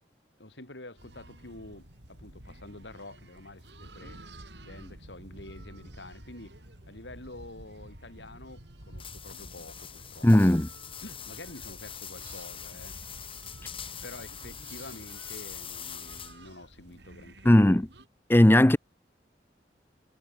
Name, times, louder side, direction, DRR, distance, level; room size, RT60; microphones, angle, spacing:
voice 1, 0.4-4.2 4.6-6.6 6.9-10.5 11.0-13.0 14.0-17.9, left 2 dB, 85° left, 5.4 m, -47 dB
sound 1, 1.0-18.1, right 1 dB, 70° right, 5.9 m, -50 dB
sound 2, 9.0-16.5, left 8 dB, 30° left, 5.1 m, -43 dB
voice 2, 10.2-10.7 17.4-17.9 18.3-18.8, left 1 dB, 15° left, 0.6 m, -18 dB
head